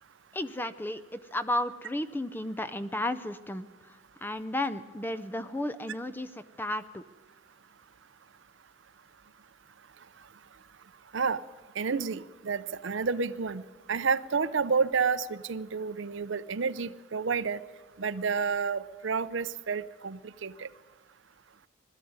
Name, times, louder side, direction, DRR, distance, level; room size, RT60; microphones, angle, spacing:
voice 1, 0.3-6.3 6.6-7.0, left 1 dB, 10° left, 13 dB, 0.5 m, -33 dB
voice 2, 11.8-13.6 13.9-17.6 18.0-20.7, right 5 dB, 60° right, 15 dB, 0.6 m, -30 dB
20.5 x 13.5 x 9.4 m, 1.3 s
head